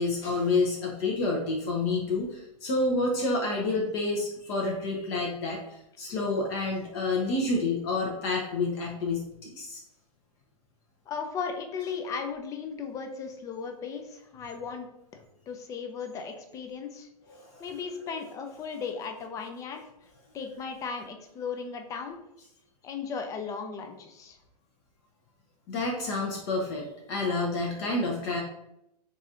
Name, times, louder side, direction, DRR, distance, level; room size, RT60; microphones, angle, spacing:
voice 1, 0.0-9.8 17.3-17.7 25.7-28.4, left 3 dB, 40° left, -1 dB, 0.7 m, -29 dB
voice 2, 11.1-14.9 15.5-17.1 17.6-19.9 20.3-22.2 22.8-24.4, left 5 dB, 15° left, 5 dB, 0.3 m, -36 dB
4.0 x 2.4 x 2.6 m, 0.83 s
hypercardioid pair, 120°, 20 cm